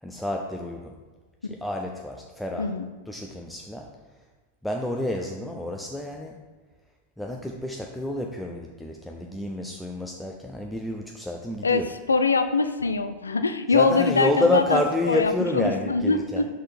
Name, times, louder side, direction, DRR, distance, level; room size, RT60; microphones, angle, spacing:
voice 1, 0.0-1.0 1.5-2.7 3.1-3.9 4.6-6.4 7.2-11.9 13.7-16.4, left 1 dB, 5° left, 1 dB, 0.5 m, -29 dB
voice 2, 2.6-2.9 11.6-11.8 12.1-14.8 15.1-16.5, left 4 dB, 75° left, 10 dB, 0.4 m, -23 dB
6.3 x 4.2 x 4.3 m, 1.3 s
figure-of-eight pair, 90°, 0 cm